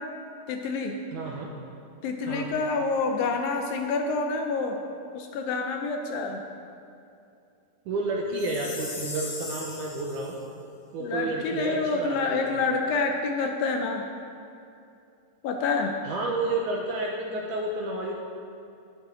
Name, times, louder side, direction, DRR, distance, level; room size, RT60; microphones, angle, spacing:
voice 1, 0.5-1.0 2.0-4.8 5.1-6.4 11.0-14.1 15.4-16.0, left 4 dB, 75° left, 4 dB, 2.2 m, -27 dB
voice 2, 1.1-1.5 2.2-2.5 7.9-10.3 10.9-12.6 16.0-18.2, right 2 dB, 75° right, -1 dB, 2.0 m, -30 dB
Chime, 8.4-10.4, left 3 dB, 50° left, 1.5 m, -38 dB
12.0 x 11.5 x 3.8 m, 2.5 s
omnidirectional pair, 4.5 m